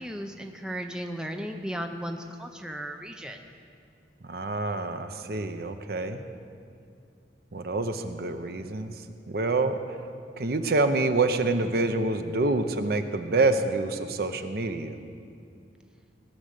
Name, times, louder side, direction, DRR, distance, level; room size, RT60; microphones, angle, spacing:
voice 1, 0.0-3.4, equal, 5° right, 4 dB, 0.6 m, -35 dB
voice 2, 4.2-6.2 7.5-8.9 9.3-10.0 10.4-15.0, right 3 dB, 55° right, 8 dB, 0.7 m, -27 dB
18.5 x 6.5 x 6.6 m, 2.4 s
head